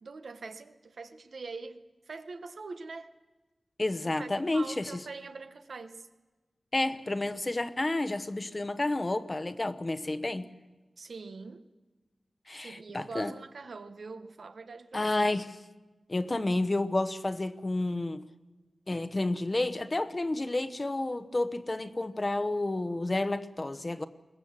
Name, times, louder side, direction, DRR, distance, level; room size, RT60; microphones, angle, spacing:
voice 1, 0.0-1.8 2.1-3.1 4.0-6.1 11.0-11.6 12.6-15.1, right 4 dB, 75° right, 9 dB, 1.1 m, -43 dB
voice 2, 3.8-4.9 6.7-10.5 12.5-13.3 14.9-15.6 16.1-18.2 18.9-24.1, left 2 dB, 30° left, 12 dB, 0.9 m, -30 dB
22.0 x 18.0 x 7.5 m, 1.2 s
wide cardioid pair, 90°, 0 cm